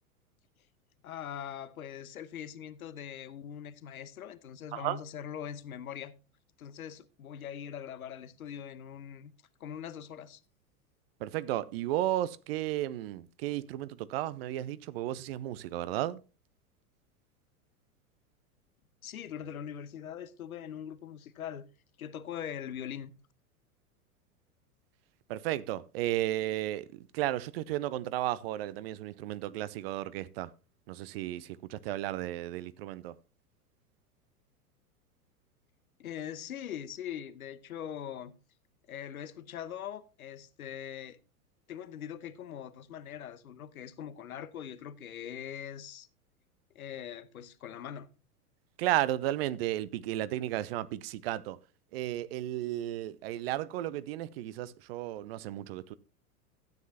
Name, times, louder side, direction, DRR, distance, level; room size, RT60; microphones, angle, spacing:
voice 1, 1.0-6.1 6.6-9.3 9.6-10.4 19.0-21.6 22.0-23.1 36.0-38.3 38.9-41.2 41.7-46.1 46.7-48.1, left 9 dB, 65° left, 1.0 m, -42 dB
voice 2, 4.7-5.0 11.2-16.2 25.3-30.5 30.9-33.2 48.8-51.6 51.9-55.9, right 14 dB, 40° right, 0.6 m, -34 dB
13.0 x 9.3 x 2.8 m
figure-of-eight pair, 90°, 45 cm